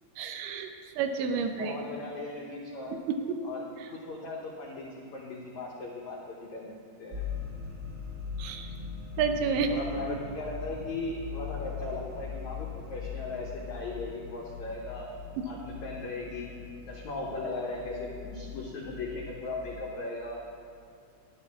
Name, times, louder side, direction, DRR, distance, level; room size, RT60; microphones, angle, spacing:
voice 1, 0.2-0.7 1.0-1.7 8.4-8.7 9.2-9.7, right 6 dB, 80° right, 5 dB, 2.6 m, -29 dB
voice 2, 1.5-2.9 3.4-7.3 9.7-15.1 15.5-16.5 16.9-20.4, left 2 dB, 90° left, -2 dB, 1.6 m, -38 dB
sound 1, 7.1-20.0, left 6 dB, 40° right, 1.7 m, -41 dB
12.5 x 11.0 x 3.5 m, 2.3 s
omnidirectional pair, 4.7 m